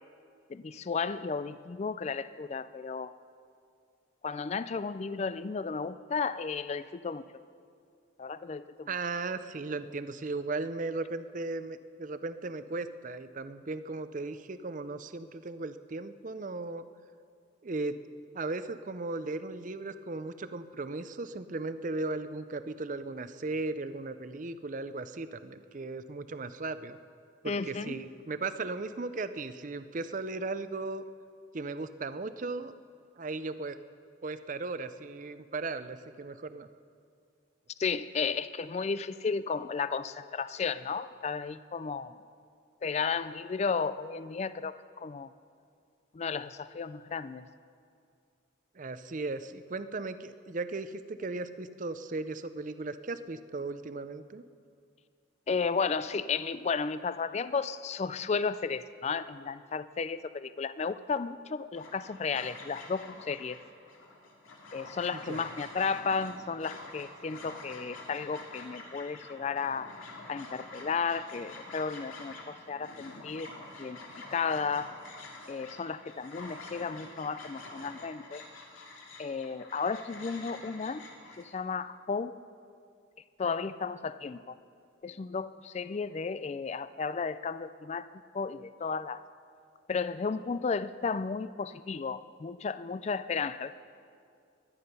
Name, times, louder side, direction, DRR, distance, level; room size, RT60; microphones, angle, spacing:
voice 1, 0.5-3.1 4.2-7.2 8.2-8.9 27.5-27.9 37.8-42.2 42.8-45.3 46.1-47.5 55.5-63.6 64.7-69.9 70.3-73.5 73.8-74.0 74.3-74.9 75.5-78.4 79.2-81.0 81.4-82.3 83.4-84.6 85.0-88.1 88.3-89.2 89.9-93.7, left 5 dB, 35° left, 15 dB, 0.3 m, -33 dB
voice 2, 8.9-16.8 17.6-18.0 18.3-27.0 27.4-31.0 31.5-32.7 33.2-33.8 34.2-36.7 48.7-54.4 65.1-65.5, right 3 dB, 40° right, 12 dB, 0.5 m, -37 dB
sound 1, 61.7-81.4, left 2 dB, 80° left, 2.6 m, -47 dB
22.5 x 9.8 x 5.5 m, 2.3 s
head